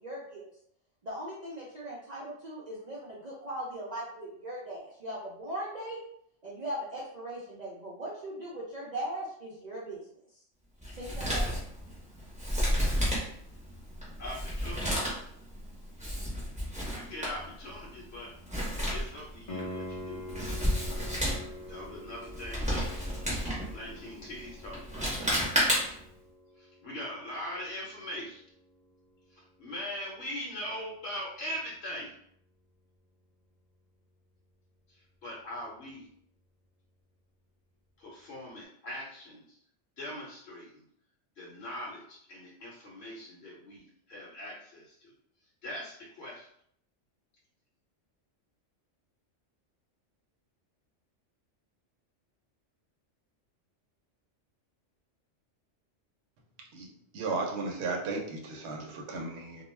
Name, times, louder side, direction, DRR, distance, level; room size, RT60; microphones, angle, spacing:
voice 1, 0.0-0.5 1.0-6.0 6.4-10.0 10.9-11.5, right 1 dB, 55° right, -6 dB, 0.5 m, -39 dB
Male speech man speaking, 10.8-26.1, equal, 5° right, 0.7 m, -32 dB
voice 2, 14.2-15.0 16.9-18.3 18.9-20.4 21.7-22.9 23.7-25.1 26.6-28.4 29.3-32.1 34.9-36.1 38.0-39.4 40.0-40.8 41.4-45.1 45.6-46.5, left 1 dB, 65° left, -5 dB, 0.9 m, -41 dB
Piano, 19.5-30.1 33.4-33.5, left 1 dB, 45° left, 0.4 m, -46 dB
voice 3, 57.1-59.6, right 3 dB, 70° right, 1 dB, 0.8 m, -35 dB
2.2 x 2.2 x 3.1 m, 0.68 s
omnidirectional pair, 1.2 m